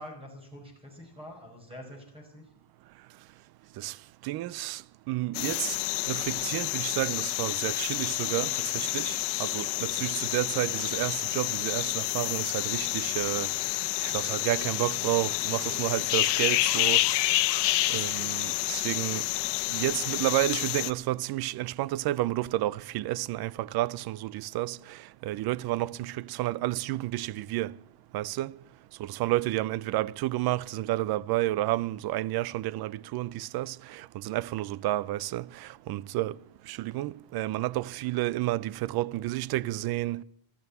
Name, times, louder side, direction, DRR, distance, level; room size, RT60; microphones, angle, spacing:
voice 1, 0.0-2.5, equal, 10° right, 5.1 m, -45 dB
voice 2, 4.2-4.8 5.1-5.8 6.1-13.5 14.0-17.2 17.9-19.2 19.7-27.7 28.1-28.5 29.0-36.3 36.7-40.2, right 16 dB, 55° right, 0.6 m, -31 dB
sound 1, 5.3-20.9, left 17 dB, 65° left, 1.1 m, -29 dB
14.5 x 12.5 x 8.0 m
cardioid pair, 155°, 44 cm